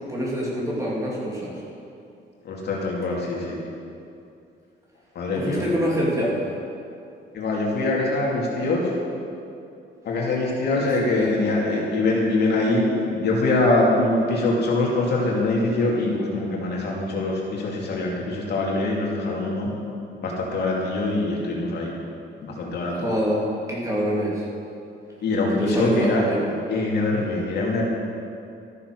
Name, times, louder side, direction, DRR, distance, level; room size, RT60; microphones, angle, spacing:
voice 1, 0.1-1.6 5.4-6.4 11.2-11.3 23.0-24.4 25.5-26.4, equal, 15° right, -5 dB, 3.2 m, -25 dB
voice 2, 2.4-3.6 5.1-5.6 7.3-8.9 10.0-19.7 20.2-22.0 22.4-23.1 25.2-26.2 26.7-27.8, left 2 dB, 60° left, -3 dB, 2.6 m, -23 dB
13.5 x 10.0 x 6.3 m, 2.6 s
cardioid pair, 145°, 19 cm